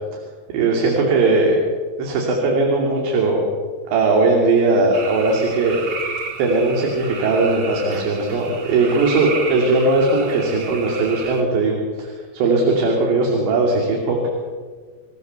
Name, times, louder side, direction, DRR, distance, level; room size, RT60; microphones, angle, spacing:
voice 1, 0.5-1.6 2.0-3.5 3.9-5.8 6.4-14.3, right 3 dB, 75° right, -1 dB, 5.0 m, -19 dB
sound 1, 4.9-11.4, right 4 dB, 50° right, 1.7 m, -32 dB
27.5 x 16.0 x 6.9 m, 1.5 s
omnidirectional pair, 5.1 m